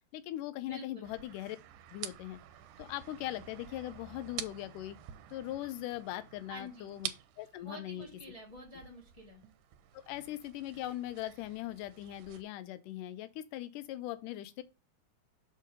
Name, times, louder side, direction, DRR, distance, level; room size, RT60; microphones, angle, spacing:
voice 1, 0.1-1.6 1.9-2.4 2.8-5.0 5.3-7.1 7.4-8.1 9.9-14.6, left 14 dB, 85° left, 2.2 m, -40 dB
voice 2, 0.6-1.1 6.5-7.0 7.6-9.4, equal, 35° left, 0.5 m, -49 dB
sound 1, 1.0-12.4, right 11 dB, 75° right, 2.0 m, -48 dB
6.6 x 3.7 x 5.2 m
omnidirectional pair, 3.8 m